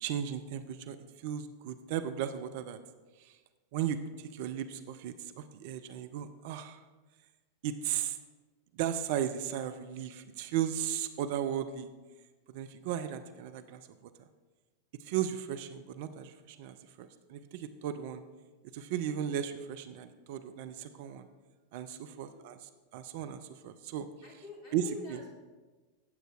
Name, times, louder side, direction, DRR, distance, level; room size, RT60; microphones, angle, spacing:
voice 1, 0.0-2.8 3.2-3.4 3.7-6.8 7.6-8.2 8.7-11.9 12.5-14.1 15.0-18.2 18.7-21.3 21.7-24.1 24.7-24.8 25.1-25.2, right 10 dB, 50° right, 11 dB, 0.5 m, -36 dB
voice 2, 21.8-22.4 24.2-25.3, left 1 dB, 35° left, -3 dB, 2.9 m, -48 dB
15.5 x 7.9 x 2.5 m, 1.3 s
figure-of-eight pair, 90°, 0 cm